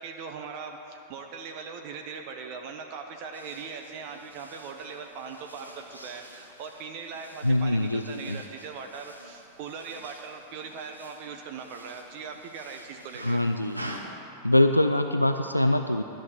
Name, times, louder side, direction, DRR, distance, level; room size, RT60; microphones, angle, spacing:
voice 1, 0.0-13.4, right 5 dB, 45° right, 4 dB, 0.9 m, -40 dB
sound 1, 3.3-14.0, right 1 dB, 85° right, 1.2 m, -47 dB
voice 2, 7.4-8.4 13.2-13.8 14.4-16.0, left 1 dB, 90° left, 6 dB, 0.4 m, -23 dB
13.0 x 6.4 x 8.7 m, 2.8 s
figure-of-eight pair, 90°, 0 cm